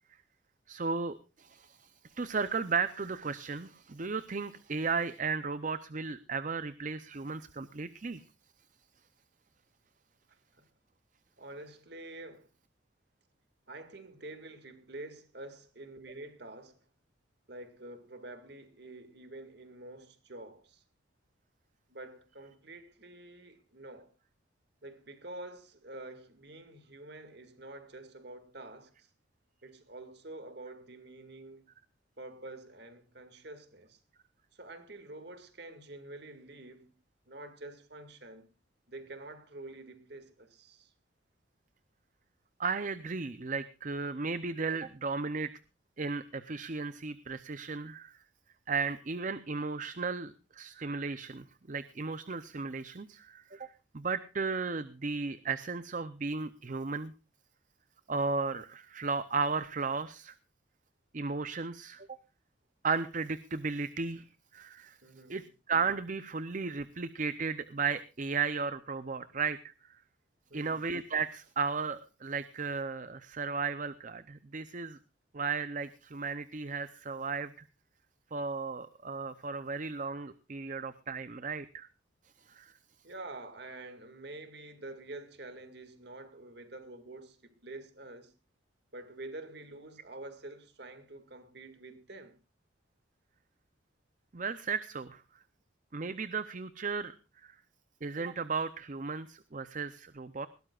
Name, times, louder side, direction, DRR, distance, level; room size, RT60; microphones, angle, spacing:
voice 1, 0.7-8.2 42.6-45.5 46.0-48.2 48.7-57.1 58.1-60.3 61.1-62.1 62.8-64.2 64.5-65.0 65.3-69.6 70.5-75.0 75.3-77.5 78.3-81.9 82.5-82.7 94.3-95.2 95.9-97.1 97.4-97.5 98.0-100.5, right 4 dB, 40° right, 0.6 m, -35 dB
voice 2, 10.3-10.6 11.4-12.5 13.7-16.8 17.5-20.8 21.9-24.1 24.8-29.1 29.6-31.6 32.2-34.0 34.5-36.9 37.3-38.5 38.9-40.9 65.0-65.4 70.5-70.8 83.0-88.3 88.9-92.4, right 2 dB, 55° right, 2.2 m, -47 dB
20.0 x 17.0 x 2.4 m
head